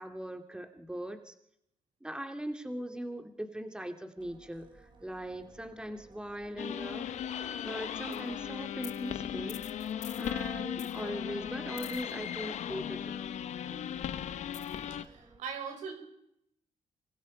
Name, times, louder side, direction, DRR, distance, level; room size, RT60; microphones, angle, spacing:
voice 1, 0.0-1.3 2.0-7.1 7.6-9.6 10.2-13.2, equal, 5° right, 6 dB, 2.5 m, -40 dB
sound 1, 4.2-15.4, right 3 dB, 40° right, 4.9 m, -59 dB
sound 2, 6.6-15.0, left 9 dB, 75° left, 1.3 m, -37 dB
voice 2, 15.0-15.9, right 6 dB, 90° right, 4 dB, 5.8 m, -40 dB
26.5 x 23.5 x 5.4 m, 0.78 s
cardioid pair, 85°, 12 cm